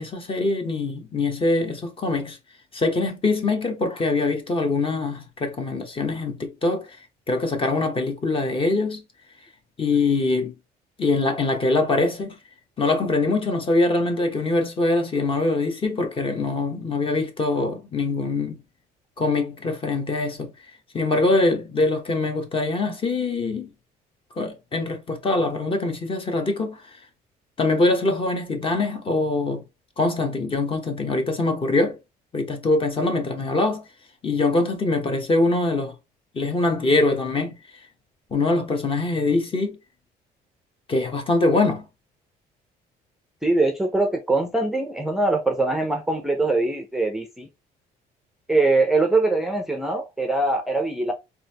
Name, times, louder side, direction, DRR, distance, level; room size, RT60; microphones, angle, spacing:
voice 1, 0.0-2.4 2.7-7.0 7.3-9.0 9.8-10.5 11.0-12.3 12.8-18.6 19.2-20.5 20.9-23.7 24.4-27.0 27.6-29.6 30.0-32.0 32.3-33.8 34.2-35.9 36.3-37.6 38.3-39.8 40.9-41.9, left 2 dB, 30° left, 1.1 m, -23 dB
voice 2, 43.4-47.5 48.5-51.1, right 2 dB, ahead, 0.5 m, -22 dB
4.0 x 2.8 x 2.8 m
cardioid pair, 110°, 17 cm